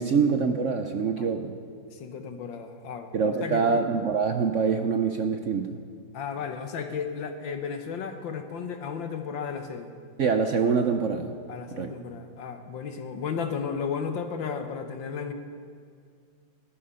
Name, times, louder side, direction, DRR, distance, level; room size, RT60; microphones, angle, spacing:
voice 1, 0.0-1.5 3.1-5.8 10.2-11.4 11.7-11.9, right 5 dB, 60° right, 6 dB, 0.8 m, -25 dB
voice 2, 1.9-3.1 3.4-3.9 6.1-9.9 11.5-15.3, left 6 dB, 85° left, 6 dB, 1.9 m, -34 dB
19.0 x 13.0 x 5.6 m, 2.2 s
omnidirectional pair, 2.0 m